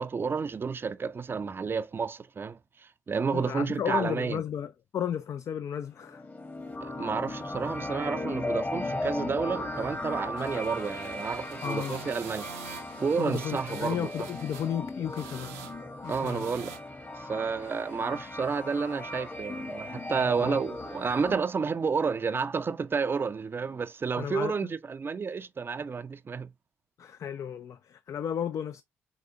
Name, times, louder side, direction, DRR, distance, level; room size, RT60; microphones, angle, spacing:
voice 1, 0.0-4.4 6.8-12.5 13.0-14.1 16.1-16.7 17.2-26.5, right 5 dB, 30° right, 0.5 m, -31 dB
voice 2, 3.3-6.3 11.6-12.1 13.2-15.6 16.0-16.5 20.4-20.6 24.2-24.7 27.0-28.8, left 9 dB, 45° left, 0.3 m, -33 dB
sound 1, 6.0-21.4, left 2 dB, 25° left, 1.1 m, -37 dB
sound 2, 10.4-14.7 15.1-15.8 16.0-16.8, right 9 dB, 70° right, 0.6 m, -46 dB
4.7 x 4.0 x 2.7 m
figure-of-eight pair, 40°, 7 cm